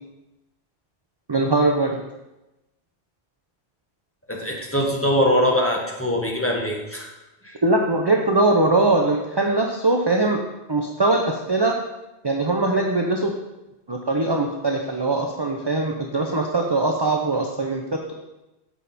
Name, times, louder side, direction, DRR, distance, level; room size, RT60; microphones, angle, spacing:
voice 1, 1.3-2.0 7.6-10.4 10.7-11.7 12.2-13.3 13.9-18.1, right 2 dB, 25° right, 1 dB, 0.7 m, -21 dB
voice 2, 4.3-7.1 7.4-7.6, equal, 10° left, -1 dB, 1.5 m, -22 dB
9.8 x 7.3 x 4.3 m, 0.98 s
omnidirectional pair, 1.1 m